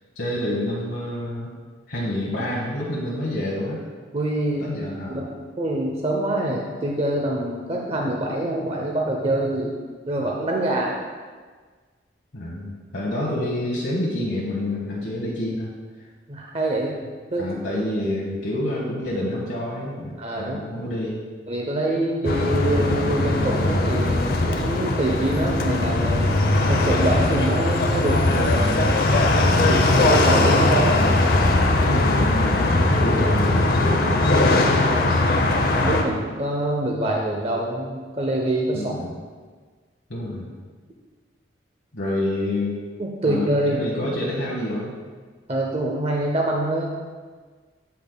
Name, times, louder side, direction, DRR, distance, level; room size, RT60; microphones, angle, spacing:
voice 1, 0.2-1.5 1.9-3.8 4.6-5.2 12.3-15.7 17.4-21.2 31.8-34.6 34.9-35.5 38.7-39.1 40.1-40.5 41.9-42.8 43.2-44.9, left 1 dB, 75° left, -4 dB, 1.1 m, -28 dB
voice 2, 4.1-4.7 5.1-5.3 5.6-9.7 10.1-11.0 16.3-17.0 17.3-17.8 20.2-20.6 21.5-26.4 26.7-28.8 29.6-31.0 34.9-35.1 35.8-39.0 43.0-44.2 45.5-46.9, right 1 dB, 35° right, -1 dB, 0.6 m, -25 dB
sound 1, 22.2-36.0, left 2 dB, 55° left, 0.6 m, -20 dB
8.3 x 8.1 x 2.2 m, 1.5 s
head